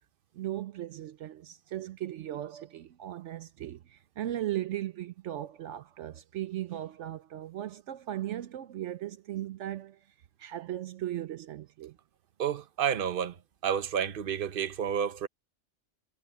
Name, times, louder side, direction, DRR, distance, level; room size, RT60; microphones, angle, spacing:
voice 1, 0.3-12.0, right 13 dB, 75° right, 0.9 m, -37 dB
voice 2, 12.4-13.4 13.6-15.3, right 8 dB, 50° right, 1.0 m, -30 dB
omnidirectional pair, 1.3 m